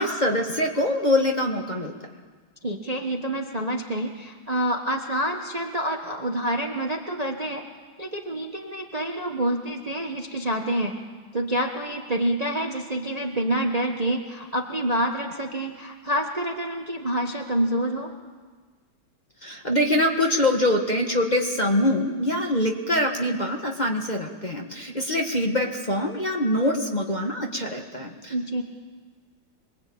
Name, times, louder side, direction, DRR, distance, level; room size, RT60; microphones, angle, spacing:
voice 1, 0.0-1.9 19.4-28.3, left 1 dB, 25° left, 2 dB, 1.6 m, -24 dB
voice 2, 2.6-7.6 8.0-11.0 11.3-18.1 28.3-28.6, right 1 dB, 25° right, 3 dB, 1.3 m, -27 dB
26.0 x 21.5 x 8.7 m, 1.5 s
omnidirectional pair, 2.1 m